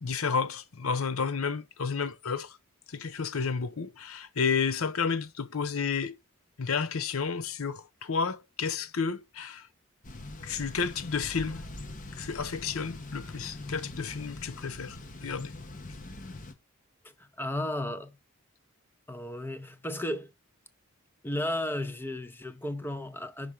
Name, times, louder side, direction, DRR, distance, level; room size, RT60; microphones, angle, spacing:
voice 1, 0.0-2.6 2.9-6.2 6.6-9.7 10.4-11.6 12.1-15.5, left 5 dB, 75° left, 0.7 m, -31 dB
Thunder / Bicycle, 10.0-16.5, left 2 dB, 40° left, 0.9 m, -43 dB
voice 2, 17.4-18.1 19.1-20.3 21.2-23.5, left 1 dB, 10° left, 0.6 m, -34 dB
5.7 x 5.0 x 4.9 m
head